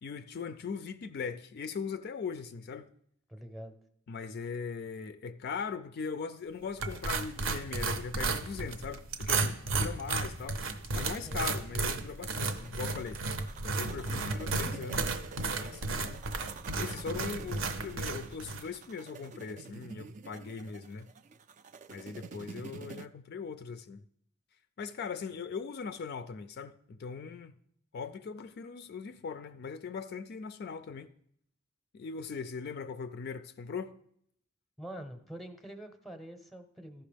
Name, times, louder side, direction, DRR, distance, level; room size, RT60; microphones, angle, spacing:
voice 1, 0.0-2.9 4.1-10.7 10.9-13.2 13.6-15.1 15.5-16.2 16.7-21.1 21.9-24.0 24.8-27.5 27.9-31.1 31.9-33.9, left 5 dB, 50° left, 0.3 m, -40 dB
voice 2, 3.3-3.7 11.3-11.5 22.0-22.3 34.8-37.0, right 1 dB, ahead, 0.7 m, -45 dB
sound 1, 6.8-18.7, right 3 dB, 65° right, 0.7 m, -34 dB
sound 2, 12.4-23.1, right 5 dB, 35° right, 0.3 m, -47 dB
14.0 x 5.8 x 3.4 m
head